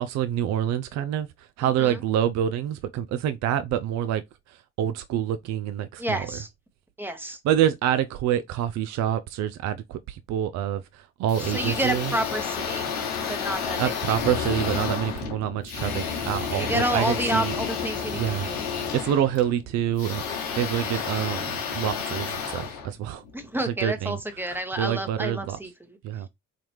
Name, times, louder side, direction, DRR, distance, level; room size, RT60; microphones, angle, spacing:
voice 1, 0.0-4.2 4.5-6.3 7.4-12.1 13.8-17.6 18.1-18.5 18.9-23.2 23.8-24.2 24.4-25.6 26.0-26.3, right 10 dB, 50° right, 0.5 m, -27 dB
voice 2, 1.6-2.0 6.0-6.5 7.0-7.4 11.4-12.9 13.3-13.8 14.2-14.4 16.5-18.6 23.3-26.0, right 1 dB, 5° right, 1.0 m, -30 dB
sound 1, 11.3-23.5, left 6 dB, 75° left, 1.0 m, -31 dB
4.0 x 2.8 x 3.1 m
hypercardioid pair, 50°, 37 cm